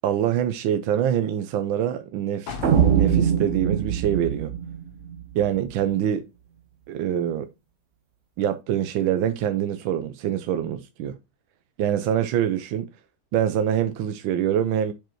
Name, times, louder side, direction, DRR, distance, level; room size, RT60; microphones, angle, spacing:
voice 1, 0.0-2.6 2.9-4.5 5.3-6.2 6.9-7.5 8.4-11.2 11.8-12.9 13.3-14.9, right 10 dB, 80° right, 1.4 m, -25 dB
sound 1, 2.5-6.2 6.6-6.7, left 6 dB, 70° left, 2.2 m, -42 dB
sound 2, 2.6-5.7, right 8 dB, 50° right, 1.0 m, -22 dB
7.8 x 5.1 x 4.5 m
omnidirectional pair, 2.2 m